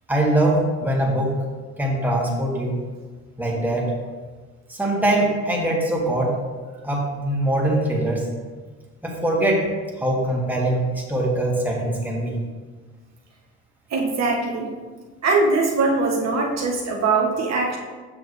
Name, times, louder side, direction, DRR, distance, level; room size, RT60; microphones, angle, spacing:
voice 1, 0.1-1.4 1.8-2.8 3.4-3.9 4.7-6.4 6.8-8.3 9.0-9.7 10.0-12.3, right 1 dB, 5° right, -3 dB, 1.9 m, -22 dB
voice 2, 13.9-14.7 15.2-17.8, right 3 dB, 60° right, 0 dB, 1.1 m, -21 dB
7.7 x 5.9 x 3.3 m, 1.4 s
cardioid pair, 90°, 30 cm